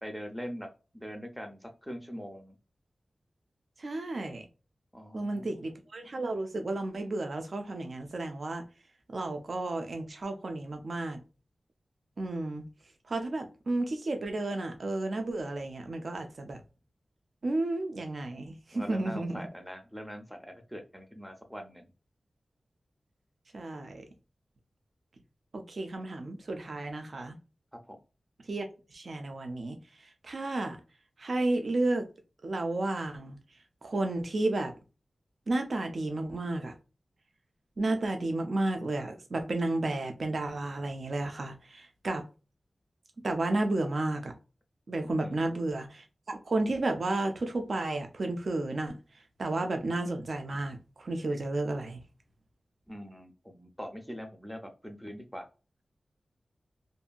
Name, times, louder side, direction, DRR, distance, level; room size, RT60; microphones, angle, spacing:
voice 1, 0.0-0.7 0.9-2.6 4.9-5.6 18.7-21.9 27.9-28.0 45.2-45.6 52.9-55.5, equal, ahead, 0.6 m, -42 dB
voice 2, 3.8-4.5 5.1-8.6 9.1-11.2 12.2-12.7 13.1-16.6 17.4-19.4 23.5-24.0 25.5-27.4 28.5-28.6 28.9-30.8 31.2-32.1 32.4-33.4 33.8-34.7 35.5-36.7 37.8-42.2 43.2-44.3 44.9-49.0 49.4-52.0, right 2 dB, 60° right, 0.5 m, -32 dB
2.7 x 2.6 x 2.3 m
wide cardioid pair, 85°, 0 cm